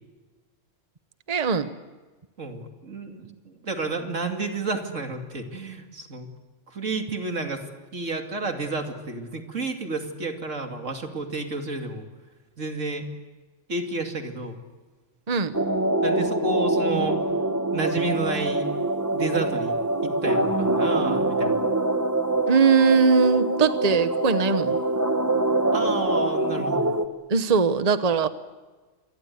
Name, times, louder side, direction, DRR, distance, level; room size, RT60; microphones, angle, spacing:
voice 1, 1.3-1.7 15.3-15.5 22.5-24.8 27.3-28.3, right 5 dB, 35° right, 11 dB, 1.1 m, -20 dB
voice 2, 2.4-6.3 6.7-7.6 7.9-12.1 12.6-13.1 13.7-14.6 16.0-17.2 17.7-18.7 19.1-19.8 20.0-21.6 25.7-26.8, right 3 dB, 85° right, 4 dB, 2.9 m, -31 dB
sound 1, 15.5-27.1, right 2 dB, 15° right, 1.3 m, -24 dB
27.0 x 22.0 x 9.5 m, 1.3 s
omnidirectional pair, 1.3 m